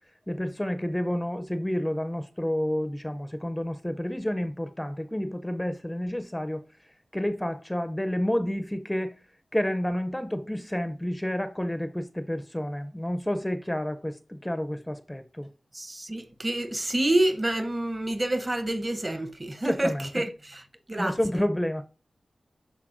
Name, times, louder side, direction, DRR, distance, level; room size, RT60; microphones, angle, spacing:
voice 1, 0.3-6.6 7.1-9.1 9.5-15.5 19.6-20.2 21.0-21.8, left 1 dB, 10° left, 0.5 m, -30 dB
voice 2, 15.7-20.6 20.9-21.4, right 1 dB, 25° right, 0.8 m, -28 dB
12.0 x 4.1 x 2.5 m
wide cardioid pair, 90°, 0 cm